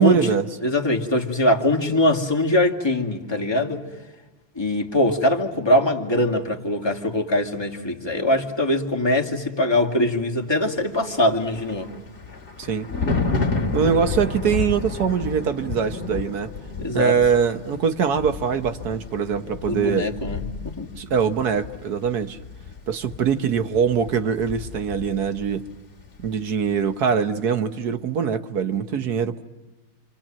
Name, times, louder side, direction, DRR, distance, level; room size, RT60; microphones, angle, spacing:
voice 1, 0.0-0.5 12.6-12.9 13.7-16.5 16.9-20.1 21.0-22.4 22.9-25.7 26.2-29.4, right 7 dB, 55° right, 1.4 m, -23 dB
voice 2, 0.6-3.8 4.6-11.9 16.8-17.1 19.7-20.9, left 1 dB, 10° left, 2.1 m, -22 dB
Thunder, 11.1-25.7 26.0-26.3, left 4 dB, 30° left, 2.3 m, -31 dB
28.5 x 26.5 x 7.5 m
omnidirectional pair, 2.4 m